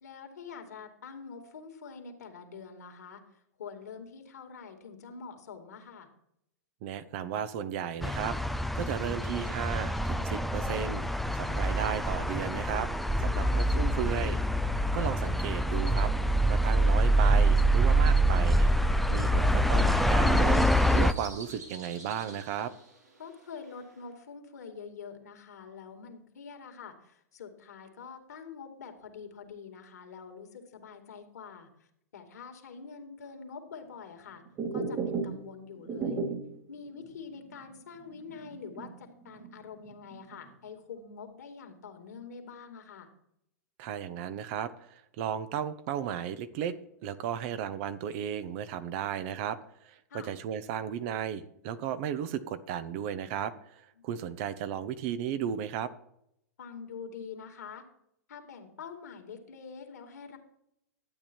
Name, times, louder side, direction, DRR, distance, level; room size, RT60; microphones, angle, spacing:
voice 1, 0.0-3.2 3.6-6.1 13.4-13.6 23.2-31.7 32.1-34.4 34.7-36.2 36.7-43.1 50.1-50.3 56.6-57.8 58.3-60.4, left 6 dB, 75° left, 5 dB, 2.3 m, -45 dB
voice 2, 6.8-12.9 13.2-14.4 14.9-16.1 16.5-18.7 19.1-22.7 43.8-46.8 47.0-49.6 49.8-55.9, right 9 dB, 50° right, 13 dB, 1.0 m, -35 dB
sound 1, 8.0-21.1, right 1 dB, ahead, 0.5 m, -25 dB
sound 2, 18.9-24.1, right 3 dB, 90° right, 3.0 m, -51 dB
sound 3, 34.5-36.6 37.0-37.1 37.5-37.6 38.1-39.5 39.9-40.5, right 4 dB, 30° right, 2.5 m, -34 dB
12.0 x 8.6 x 4.5 m, 0.77 s
hypercardioid pair, 110°, 9 cm